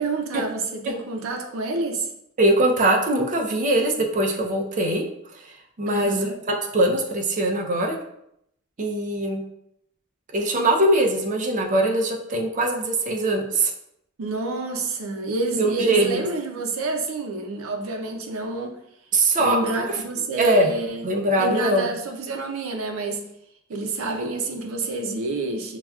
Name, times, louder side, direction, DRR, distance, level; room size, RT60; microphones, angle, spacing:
voice 1, 0.0-2.1 5.9-6.4 14.2-18.8 19.4-21.1 21.4-23.2 23.7-25.8, right 3 dB, 85° right, 4 dB, 0.6 m, -28 dB
voice 2, 2.4-8.0 8.8-9.4 10.3-13.7 15.6-16.2 19.1-19.6 19.9-20.0 20.4-20.7 21.0-21.9, right 1 dB, 40° right, 2 dB, 0.5 m, -22 dB
5.6 x 2.3 x 2.3 m, 0.77 s
head